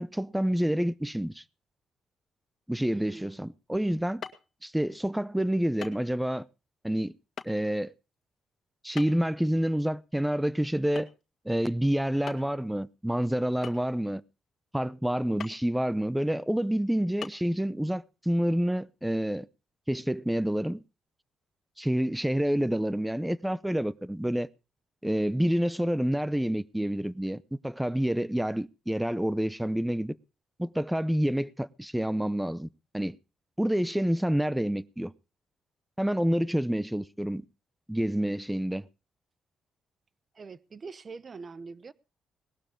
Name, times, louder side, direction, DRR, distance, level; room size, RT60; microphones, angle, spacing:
voice 1, 0.0-1.4 2.7-4.2 4.6-6.5 6.8-7.1 7.5-7.9 8.8-11.1 11.4-14.2 14.7-19.5 19.9-20.8 21.8-24.5 25.0-30.2 30.6-32.7 32.9-33.2 33.6-35.1 36.0-37.4 37.9-38.9, equal, 5° right, 0.7 m, -28 dB
voice 2, 2.9-3.3 40.3-41.9, right 4 dB, 40° right, 0.9 m, -43 dB
sound 1, 4.2-4.5 5.8-6.0 6.3-6.4 7.4-7.5 9.0-9.3 10.9-11.2 11.5-11.6 12.3-12.6 13.6-14.1 15.4-15.6 16.2-16.3 17.2-17.3, left 7 dB, 50° left, 1.9 m, -40 dB
19.5 x 12.0 x 3.7 m
cardioid pair, 90°, 0 cm